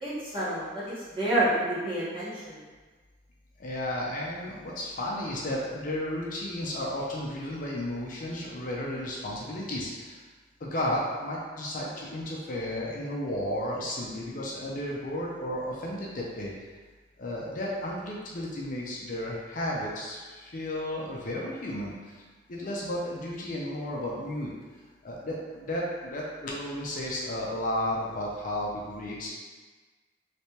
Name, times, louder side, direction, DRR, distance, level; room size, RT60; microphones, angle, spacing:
voice 1, 0.0-2.6, right 1 dB, 30° right, -12 dB, 1.4 m, -29 dB
voice 2, 3.6-10.2 10.6-16.5 17.2-22.2 22.5-24.5 25.0-29.3, left 1 dB, 45° left, -3 dB, 0.5 m, -33 dB
3.3 x 3.2 x 2.8 m, 1.4 s
head